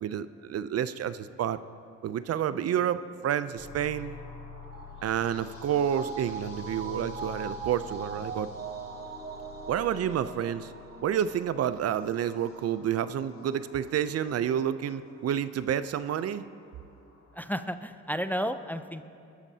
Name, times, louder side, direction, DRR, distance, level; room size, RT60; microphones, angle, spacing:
voice 1, 0.0-1.6 2.0-4.1 5.0-8.5 9.7-10.7 11.0-16.4, right 9 dB, 55° right, 14 dB, 0.5 m, -29 dB
sound 1, 3.6-17.4, left 5 dB, 70° left, 2.5 m, -48 dB
sound 2, 4.7-11.4 11.7-11.8, right 5 dB, 30° right, 0.9 m, -41 dB
voice 2, 17.4-19.0, equal, 5° left, 10 dB, 0.4 m, -32 dB
22.0 x 13.0 x 2.8 m, 2.5 s
cardioid pair, 90°, 30 cm